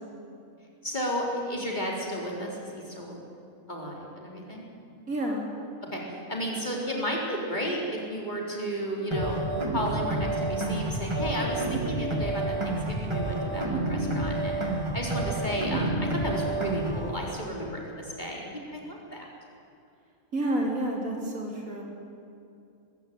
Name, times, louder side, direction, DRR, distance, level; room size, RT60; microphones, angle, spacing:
voice 1, 0.8-3.2 3.7-4.6 5.9-14.6 14.9-19.3, equal, 30° left, -2 dB, 4.0 m, -33 dB
voice 2, 5.1-5.4 20.3-21.8, right 1 dB, 80° right, -1 dB, 4.1 m, -29 dB
sound 1, 9.1-17.1, right 2 dB, 20° right, 2.2 m, -29 dB
20.5 x 15.5 x 9.4 m, 2.6 s
omnidirectional pair, 1.4 m